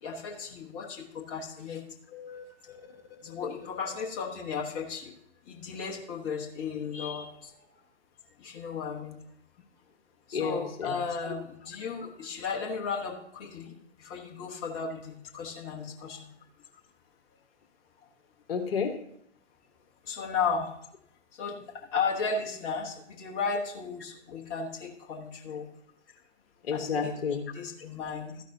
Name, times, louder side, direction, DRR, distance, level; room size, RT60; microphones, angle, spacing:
voice 1, 0.0-1.8 3.2-5.1 5.5-7.5 8.4-9.2 10.3-16.3 20.0-20.7 21.4-25.7 26.7-27.1 27.5-28.4, left 5 dB, 30° left, 0 dB, 1.3 m, -35 dB
voice 2, 2.1-2.4 10.3-10.9 18.5-19.0 26.7-27.5, left 6 dB, 55° left, 6 dB, 1.4 m, -31 dB
13.0 x 10.5 x 2.7 m, 0.71 s
figure-of-eight pair, 125°, 35 cm